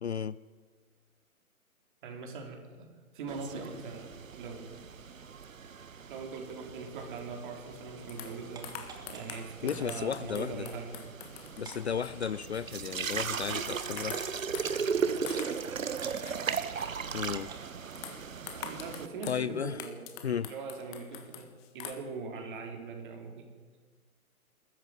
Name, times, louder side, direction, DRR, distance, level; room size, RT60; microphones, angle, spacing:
voice 1, 0.0-0.4 9.6-10.7 11.6-14.2 17.1-17.5 19.3-19.8 20.2-20.5, left 7 dB, 50° left, 18 dB, 0.5 m, -34 dB
voice 2, 2.0-2.9 3.1-4.8 6.1-8.8 9.1-11.0 13.1-13.2 18.5-23.5, right 4 dB, 35° right, 3 dB, 4.0 m, -41 dB
sound 1, 3.3-19.1, right 6 dB, 60° right, 1.3 m, -37 dB
sound 2, 8.1-13.7 14.0-15.7 16.0-17.3 18.0-19.5 19.8-21.9, left 10 dB, 15° left, 1.5 m, -46 dB
sound 3, 8.6-9.4 10.2-10.4 11.7-12.3 13.0-13.1 13.5-14.3 15.0-15.1 15.4-16.2 17.4-17.7 18.3-18.4, right 6 dB, 10° right, 1.6 m, -50 dB
21.0 x 14.0 x 9.5 m, 1.5 s
figure-of-eight pair, 135°, 44 cm